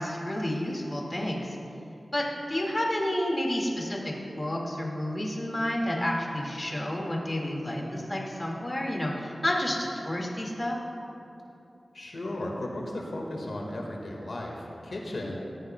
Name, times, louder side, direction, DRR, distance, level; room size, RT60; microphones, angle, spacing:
voice 1, 0.0-1.4 2.1-10.8, left 1 dB, 25° left, -2 dB, 1.8 m, -30 dB
voice 2, 11.9-15.4, left 1 dB, 70° left, -1 dB, 1.6 m, -35 dB
17.0 x 14.5 x 2.2 m, 2.8 s
wide cardioid pair, 100°, 0 cm